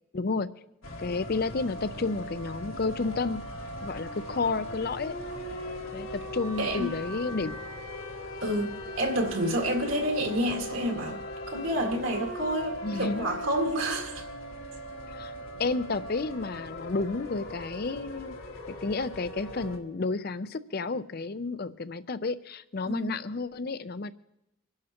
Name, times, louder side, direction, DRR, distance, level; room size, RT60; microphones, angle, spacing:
voice 1, 0.1-0.5 1.0-3.4 3.8-5.2 5.9-7.5 12.8-13.3 15.1-15.3 15.6-18.4 18.8-24.1, left 3 dB, 45° left, 14 dB, 0.5 m, -31 dB
sound 1, 0.8-19.8, equal, 75° left, 1.7 m, -39 dB
voice 2, 6.6-6.9 8.4-11.2 11.5-14.3 22.8-23.1, right 1 dB, 70° right, 1 dB, 2.0 m, -29 dB
25.5 x 11.5 x 2.9 m, 0.87 s
head